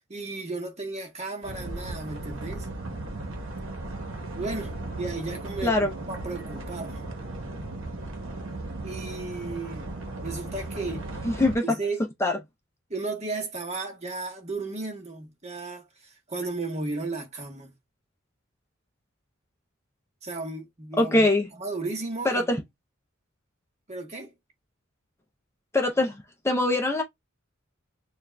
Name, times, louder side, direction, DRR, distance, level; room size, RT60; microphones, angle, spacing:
voice 1, 0.1-2.7 4.4-7.0 8.8-9.9 10.2-11.1 11.6-12.0 12.9-17.7 20.2-21.3 21.6-22.5 23.9-24.3, right 3 dB, 35° right, 1.2 m, -34 dB
sound 1, 1.4-11.5, right 2 dB, 70° right, 1.1 m, -36 dB
voice 2, 5.6-5.9 11.2-11.8 12.2-12.3 21.0-21.5 22.2-22.6 25.7-27.0, left 2 dB, 15° left, 0.5 m, -23 dB
6.9 x 2.5 x 2.2 m
head